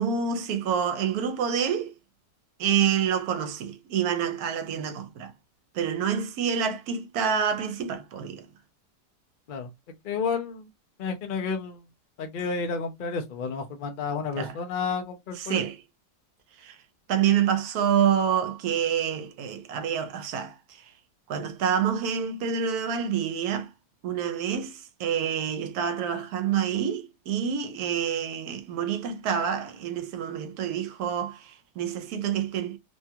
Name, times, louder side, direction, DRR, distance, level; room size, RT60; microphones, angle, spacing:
voice 1, 0.0-2.0 2.6-5.3 5.7-8.5 14.4-14.6 15.4-15.8 16.6-16.8 17.1-20.9 21.3-23.7 24.0-32.8, right 8 dB, 70° right, 1.1 m, -27 dB
voice 2, 10.0-10.7 11.0-11.9 12.2-15.6, left 5 dB, 75° left, 0.4 m, -31 dB
3.1 x 2.3 x 2.7 m
omnidirectional pair, 1.8 m